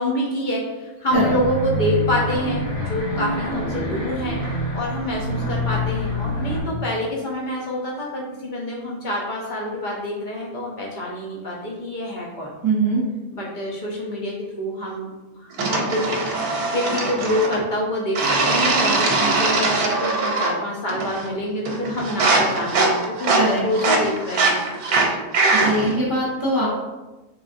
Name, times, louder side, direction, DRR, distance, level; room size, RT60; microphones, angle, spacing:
voice 1, 0.0-12.5 13.3-16.1 16.7-25.1, left 1 dB, 85° left, -3 dB, 0.4 m, -27 dB
sound 1, 1.1-6.6, equal, 50° left, 1.3 m, -26 dB
voice 2, 12.6-13.0 23.3-23.6 25.5-26.7, right 2 dB, 30° right, -7 dB, 0.4 m, -21 dB
sound 2, 15.6-17.6 18.2-20.6 20.9-21.3 21.7-25.9, right 3 dB, 85° right, 1.1 m, -21 dB
3.5 x 3.3 x 2.5 m, 1.1 s
omnidirectional pair, 1.6 m